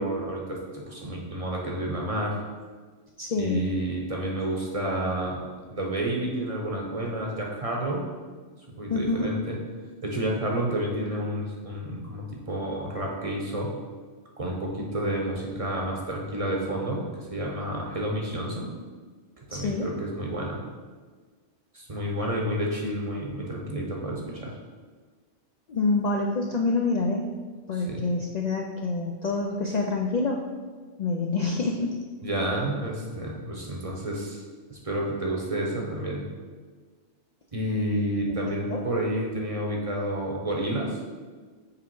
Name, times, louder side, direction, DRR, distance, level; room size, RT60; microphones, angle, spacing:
voice 1, 0.0-2.4 3.4-8.0 8.7-9.6 10.0-13.7 14.4-18.7 19.5-20.6 21.7-24.6 27.7-28.0 32.2-34.4 34.7-36.2 37.5-41.0, right 1 dB, 35° right, -2 dB, 0.8 m, -30 dB
voice 2, 3.2-3.7 8.9-9.3 19.5-19.9 25.7-27.3 27.7-30.4 31.0-31.9 38.3-38.4 38.7-38.8, left 3 dB, 55° left, 1 dB, 0.4 m, -26 dB
6.8 x 3.4 x 4.6 m, 1.5 s
omnidirectional pair, 1.2 m